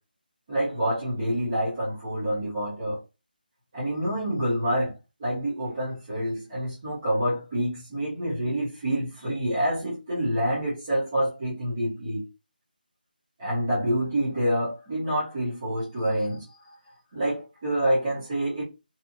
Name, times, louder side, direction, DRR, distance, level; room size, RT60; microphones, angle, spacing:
voice 1, 0.5-3.0 3.7-4.9 5.2-12.2 13.4-16.4 17.1-18.6, right 1 dB, 15° right, 0.7 m, -27 dB
2.7 x 2.5 x 2.5 m
figure-of-eight pair, 180°, 5 cm